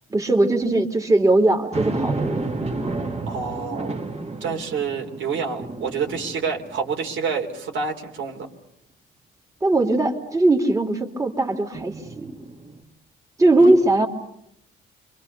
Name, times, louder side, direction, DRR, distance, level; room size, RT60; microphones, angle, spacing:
voice 1, 0.1-2.4 9.6-12.3 13.4-14.1, right 2 dB, 15° right, 1 dB, 2.9 m, -19 dB
sound 1, 1.7-7.3 7.8-7.9 11.7-12.8, right 3 dB, 30° right, 2.8 m, -31 dB
voice 2, 3.3-4.0 4.4-8.5 13.6-13.8, right 5 dB, 75° right, 1 dB, 3.6 m, -28 dB
28.0 x 24.5 x 6.8 m, 0.77 s
cardioid pair, 90°, 20 cm